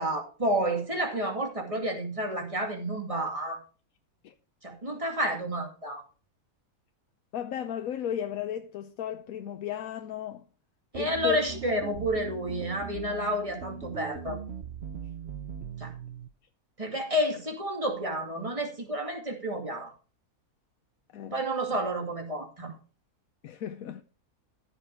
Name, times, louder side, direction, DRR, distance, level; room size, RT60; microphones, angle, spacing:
voice 1, 0.0-3.6 4.6-6.0 10.9-14.4 15.8-15.9 16.8-19.9 21.3-22.7, right 1 dB, 20° right, 2.3 m, -30 dB
voice 2, 7.3-10.5 10.9-11.4 21.1-21.4 23.4-24.0, left 9 dB, 70° left, 1.1 m, -35 dB
sound 1, 10.9-16.3, right 7 dB, 50° right, 1.0 m, -40 dB
14.0 x 6.1 x 4.6 m
omnidirectional pair, 1.6 m